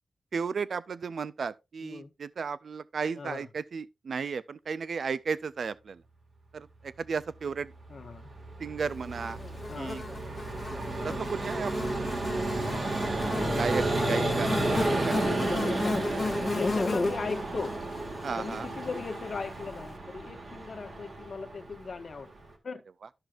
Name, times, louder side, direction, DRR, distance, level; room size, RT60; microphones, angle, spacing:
voice 1, 0.3-6.0 6.5-7.7 8.6-9.4 9.8-10.0 11.0-11.7 13.6-13.8 14.1-14.5 15.1-15.2 18.2-18.7, right 5 dB, 70° right, 0.3 m, -34 dB
voice 2, 1.8-2.1 3.2-3.5 7.9-8.3 9.7-10.0 11.0-11.4 13.3-17.8 18.4-22.3 22.6-22.8, left 4 dB, 60° left, 1.1 m, -38 dB
Vehicle, 7.8-22.5, right 2 dB, 55° right, 1.8 m, -32 dB
Buzz, 9.1-19.6, left 3 dB, 35° left, 1.3 m, -35 dB
12.0 x 6.3 x 2.4 m
wide cardioid pair, 130°, 0 cm